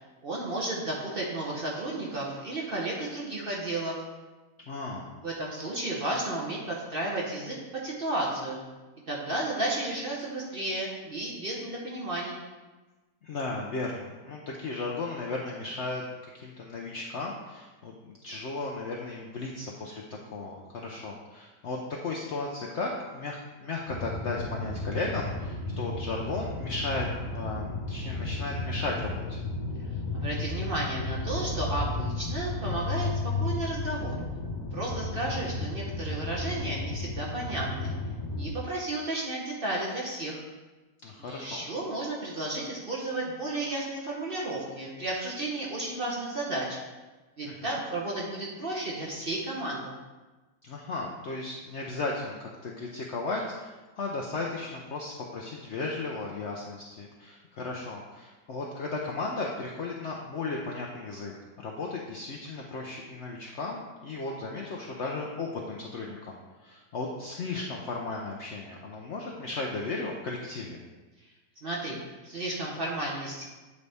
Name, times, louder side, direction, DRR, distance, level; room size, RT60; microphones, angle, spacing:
voice 1, 0.2-4.0 5.2-7.6 7.8-8.6 9.1-12.4 30.1-34.2 34.7-37.9 38.3-40.4 41.2-46.8 47.4-50.0 71.6-72.0 72.2-73.4, right 2 dB, 45° right, -3 dB, 0.9 m, -33 dB
voice 2, 4.7-5.1 13.2-16.0 16.4-20.0 20.3-29.4 41.0-41.7 47.4-47.8 50.6-61.3 61.6-70.8, left 3 dB, 65° left, -2 dB, 0.7 m, -35 dB
sound 1, 23.9-38.5, left 2 dB, 20° left, 1.1 m, -33 dB
8.3 x 4.0 x 3.4 m, 1.2 s
omnidirectional pair, 1.8 m